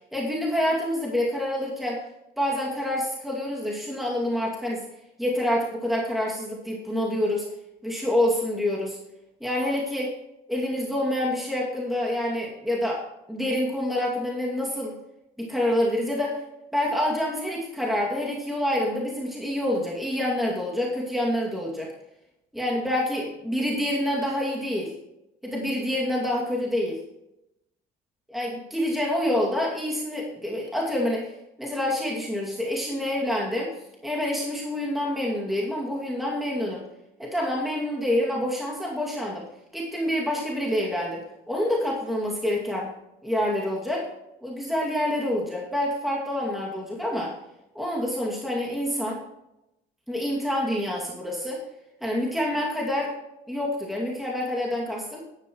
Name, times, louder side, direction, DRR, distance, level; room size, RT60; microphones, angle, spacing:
voice 1, 0.1-2.0 2.4-4.9 5.2-7.5 7.8-9.0 9.4-10.1 10.5-15.0 15.4-16.4 16.7-21.9 22.5-24.9 25.4-27.0 28.3-31.3 31.6-33.7 34.0-36.8 37.2-39.5 39.7-42.9 43.2-44.1 44.4-47.3 47.7-49.2 50.1-51.6 52.0-53.1 53.5-55.2, left 1 dB, ahead, -3 dB, 2.3 m, -27 dB
13.5 x 11.5 x 3.1 m, 0.90 s
cardioid pair, 110°, 17 cm